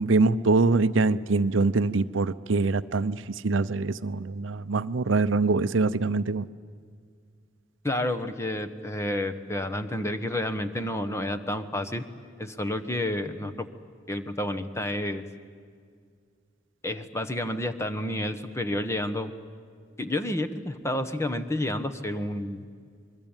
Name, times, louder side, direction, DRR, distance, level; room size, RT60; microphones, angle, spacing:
voice 1, 0.0-6.5, right 3 dB, 85° right, 14 dB, 0.7 m, -24 dB
voice 2, 7.8-12.0 12.4-13.7 14.1-15.2 16.8-19.3 20.0-22.6, left 1 dB, 15° left, 10 dB, 1.2 m, -30 dB
26.0 x 22.0 x 9.0 m, 2.1 s
head